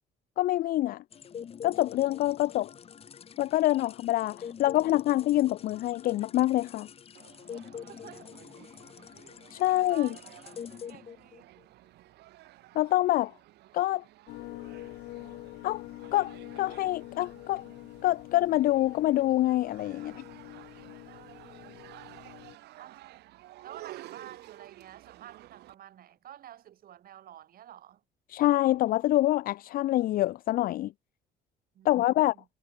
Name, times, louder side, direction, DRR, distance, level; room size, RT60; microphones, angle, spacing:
voice 1, 0.4-1.0 1.6-2.7 3.4-6.9 9.5-10.1 12.8-13.3 13.7-14.0 15.6-15.8 16.1-17.6 18.0-20.2 28.3-30.9 31.8-32.3, left 15 dB, 60° left, 0.4 m, -26 dB
sound 1, 1.1-11.6, left 7 dB, 35° left, 0.9 m, -46 dB
sound 2, 7.1-25.7, right 17 dB, 80° right, 5.1 m, -52 dB
voice 2, 9.6-10.2 10.9-11.5 21.1-21.8 22.8-23.0 23.6-28.0 31.7-32.5, right 11 dB, 60° right, 5.9 m, -50 dB
sound 3, 14.3-22.6, left 18 dB, 85° left, 5.4 m, -46 dB
cardioid pair, 110°, 17 cm